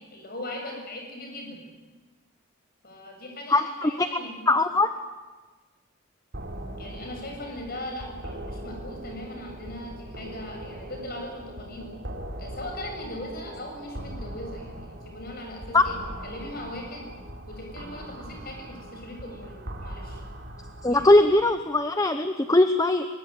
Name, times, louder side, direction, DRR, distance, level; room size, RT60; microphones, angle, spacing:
voice 1, 0.1-1.6 2.8-4.5 6.8-11.9 12.4-15.9 16.2-17.1 17.5-19.6 19.8-20.2 20.9-21.1, left 1 dB, 45° left, 2 dB, 7.5 m, -39 dB
voice 2, 3.5-4.1 4.5-4.9 15.7-15.8 20.8-23.1, left 2 dB, 15° left, 9 dB, 0.9 m, -20 dB
sound 1, 6.3-21.6, right 1 dB, 50° right, 3.7 m, -40 dB
22.5 x 22.0 x 9.5 m, 1.3 s
head